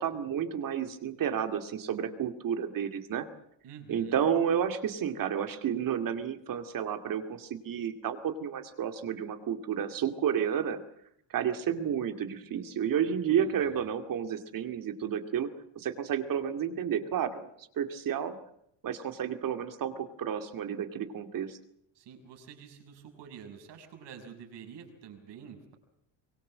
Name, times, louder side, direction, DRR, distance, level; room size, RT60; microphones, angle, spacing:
voice 1, 0.0-3.3 3.9-10.8 11.3-15.5 15.8-18.4 18.8-21.6, right 8 dB, 45° right, 7 dB, 2.4 m, -31 dB
voice 2, 3.6-4.2 13.4-13.9 21.9-25.7, right 7 dB, 65° right, 4 dB, 6.2 m, -48 dB
24.0 x 21.5 x 7.6 m, 0.73 s
cardioid pair, 145°, 44 cm